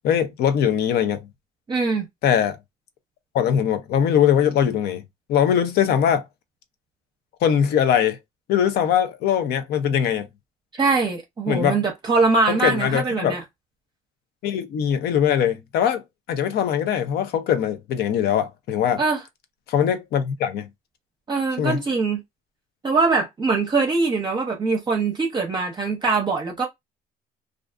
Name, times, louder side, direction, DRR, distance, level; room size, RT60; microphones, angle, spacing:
voice 1, 0.0-1.2 2.2-2.6 3.3-5.0 5.3-6.2 7.4-8.2 8.5-10.3 11.5-11.8 12.5-13.4 14.4-16.0 16.3-19.0 19.7-20.7 21.6-21.8, left 9 dB, 70° left, 0.6 m, -21 dB
voice 2, 1.7-2.1 10.7-13.4 19.0-19.2 21.3-22.2 22.8-26.7, right 4 dB, 25° right, 0.6 m, -22 dB
2.4 x 2.3 x 2.4 m
cardioid pair, 110°, 17 cm